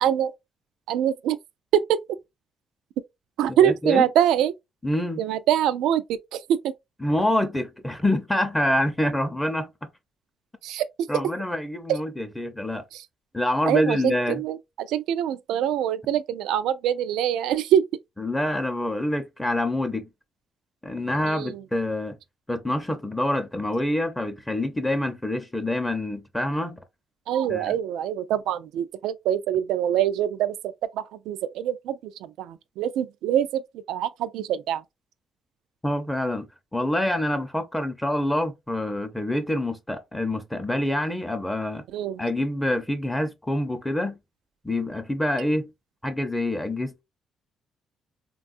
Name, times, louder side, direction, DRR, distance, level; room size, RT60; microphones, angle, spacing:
voice 1, 0.0-0.3 0.9-1.4 1.7-1.8 3.4-4.5 5.2-6.0 6.3-6.7 10.6-10.8 13.7-14.6 14.9-17.8 21.3-21.6 27.3-30.5 31.0-32.0 32.4-33.6 33.9-34.8 41.9-42.2, right 10 dB, 90° right, 0.3 m, -24 dB
voice 2, 3.5-4.0 4.8-5.2 7.0-9.9 11.1-12.9 13.3-14.4 18.2-20.1 20.8-22.2 22.5-26.8 27.5-27.8 35.8-36.5 36.7-41.8 42.2-44.2 44.6-45.7 46.0-47.0, left 1 dB, 10° left, 0.6 m, -26 dB
3.4 x 2.3 x 2.4 m
cardioid pair, 90°, 0 cm